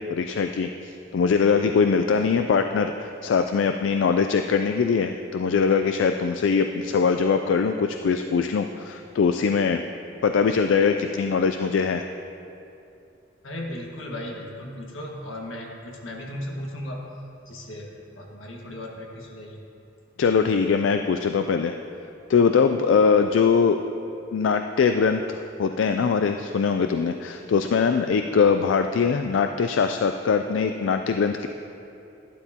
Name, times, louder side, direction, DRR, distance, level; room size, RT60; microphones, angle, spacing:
voice 1, 0.0-9.8 10.2-12.0 20.2-21.7 22.3-23.8 24.3-31.5, left 5 dB, 70° left, 7 dB, 0.3 m, -22 dB
voice 2, 13.4-17.0 17.5-19.6, left 1 dB, 90° left, -1 dB, 1.6 m, -36 dB
12.0 x 11.5 x 2.8 m, 2.7 s
head